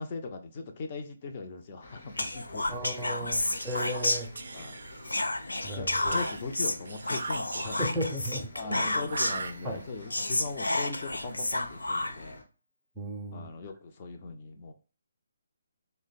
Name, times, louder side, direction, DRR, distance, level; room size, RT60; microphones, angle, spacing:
voice 1, 0.0-2.8 3.2-3.6 4.5-4.8 5.7-7.8 8.5-12.4 13.3-14.7, left 4 dB, 35° left, 5 dB, 0.6 m, -39 dB
sound 1, 1.8-12.4, left 2 dB, 65° left, 1.0 m, -50 dB
Whispering, 2.2-4.7 5.0-9.5 9.8-9.9 10.1-12.4, left 2 dB, 90° left, 0.4 m, -31 dB
voice 2, 2.7-4.3 5.6-6.2 7.6-9.1 9.6-9.8 13.0-13.5, equal, 5° right, -4 dB, 0.6 m, -35 dB
Whispering 2, 3.4-5.4 6.1-8.1 9.0-10.1, right 4 dB, 65° right, 0.4 m, -41 dB
2.9 x 2.2 x 4.0 m, 0.36 s
figure-of-eight pair, 145°, 0 cm